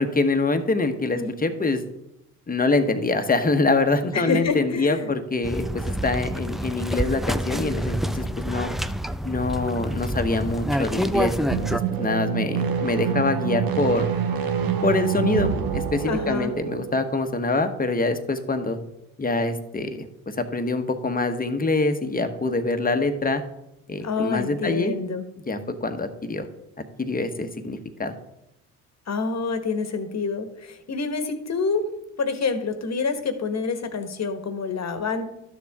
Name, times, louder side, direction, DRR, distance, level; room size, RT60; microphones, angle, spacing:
voice 1, 0.0-1.8 2.5-8.7 9.2-14.1 14.8-18.8 19.2-23.4 23.9-24.9 25.5-26.5 27.0-28.1, left 3 dB, 20° left, 8 dB, 1.2 m, -25 dB
voice 2, 4.1-5.1 16.0-16.5 24.0-25.3 29.1-31.9 32.2-35.2, left 4 dB, 40° left, 8 dB, 1.4 m, -27 dB
sound 1, 5.4-11.8, equal, ahead, 0.3 m, -27 dB
sound 2, 11.4-17.0, right 8 dB, 60° right, 1.2 m, -26 dB
12.0 x 6.9 x 3.6 m, 0.85 s
supercardioid pair, 70°, 40 cm